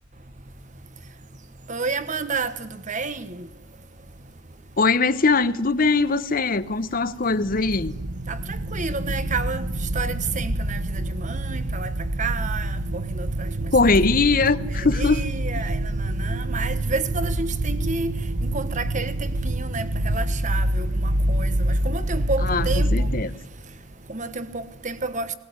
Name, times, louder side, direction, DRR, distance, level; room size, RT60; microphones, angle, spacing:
voice 1, 1.7-3.5 8.3-8.4 8.7-9.6 9.9-11.9 12.2-13.5 14.7-18.1 18.4-23.1 24.1-25.3, right 4 dB, 40° right, 1.3 m, -30 dB
voice 2, 4.8-7.9 13.7-15.3 22.4-22.7 22.9-23.3, left 3 dB, 45° left, 0.9 m, -21 dB
sound 1, 7.3-23.2, right 1 dB, 70° right, 1.3 m, -26 dB
19.5 x 19.0 x 9.5 m
head